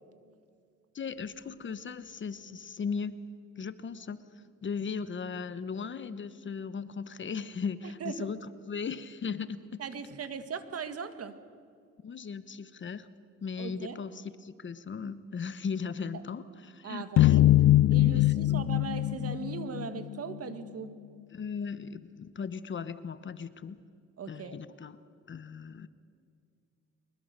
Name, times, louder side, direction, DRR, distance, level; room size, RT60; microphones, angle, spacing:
voice 1, 0.9-3.2 3.6-4.2 4.6-9.8 12.0-13.1 13.4-17.4 18.1-18.6 21.3-23.8 24.3-25.0 25.3-25.9, left 5 dB, 40° left, 14 dB, 1.0 m, -37 dB
voice 2, 7.8-8.3 9.8-11.3 13.6-14.0 16.8-17.4 17.9-21.0 24.2-24.5, right 6 dB, 50° right, 10 dB, 1.8 m, -39 dB
sound 1, 17.2-20.4, left 14 dB, 65° left, 0.6 m, -22 dB
23.5 x 21.0 x 6.7 m, 2.3 s
cardioid pair, 90°, 30 cm